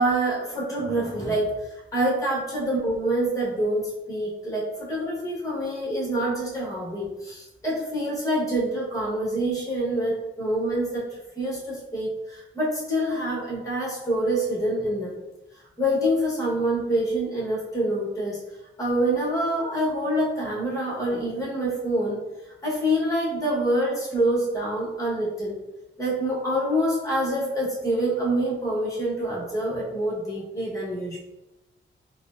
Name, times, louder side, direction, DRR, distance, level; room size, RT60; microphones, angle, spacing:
voice 1, 0.0-15.2 15.8-18.4 18.8-22.2 22.6-25.6 26.0-31.2, right 1 dB, 15° left, -5 dB, 1.0 m, -26 dB
4.4 x 2.0 x 2.4 m, 1.0 s
wide cardioid pair, 150°, 20 cm